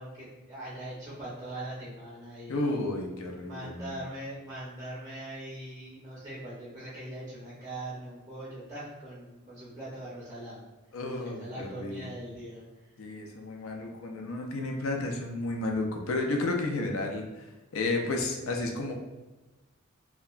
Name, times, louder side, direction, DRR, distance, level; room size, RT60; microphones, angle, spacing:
voice 1, 0.0-2.7 3.4-10.7 11.0-12.7 13.0-13.1 13.7-13.8, right 1 dB, 15° right, -8 dB, 0.5 m, -41 dB
voice 2, 2.5-3.9 10.9-12.1 13.0-17.4 17.7-18.9, left 2 dB, 70° left, 2 dB, 0.4 m, -32 dB
2.8 x 2.2 x 2.4 m, 1.1 s
head